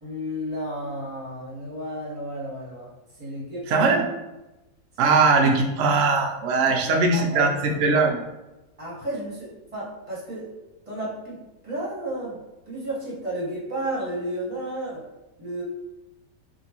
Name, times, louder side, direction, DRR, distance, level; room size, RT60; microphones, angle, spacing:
voice 1, 0.0-2.9 3.2-3.9 5.0-5.2 6.6-7.5 8.8-10.5 10.9-15.0 15.4-15.6, right 1 dB, 20° right, -7 dB, 1.0 m, -32 dB
voice 2, 3.7-4.0 5.0-7.5 7.8-8.2, right 4 dB, 75° right, 2 dB, 0.7 m, -20 dB
3.6 x 2.6 x 2.8 m, 1.0 s
omnidirectional pair, 1.9 m